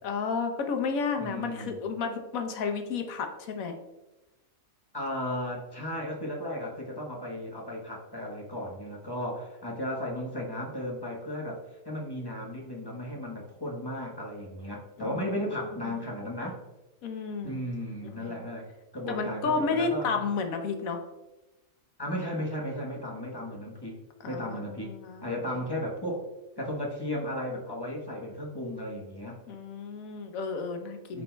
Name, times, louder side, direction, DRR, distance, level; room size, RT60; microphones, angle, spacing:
voice 1, 0.0-3.7 15.0-15.6 15.8-15.9 17.0-17.6 18.0-18.4 19.1-21.0 24.2-25.6 29.5-31.2, left 4 dB, 90° left, 5 dB, 1.2 m, -32 dB
voice 2, 1.2-1.8 4.9-11.6 11.8-16.6 17.4-18.7 18.9-20.2 22.0-24.0 24.2-24.9 25.2-26.2 26.6-29.4 31.1-31.2, left 1 dB, 20° left, -1 dB, 1.0 m, -35 dB
12.0 x 4.1 x 2.2 m, 1.0 s
omnidirectional pair, 1.4 m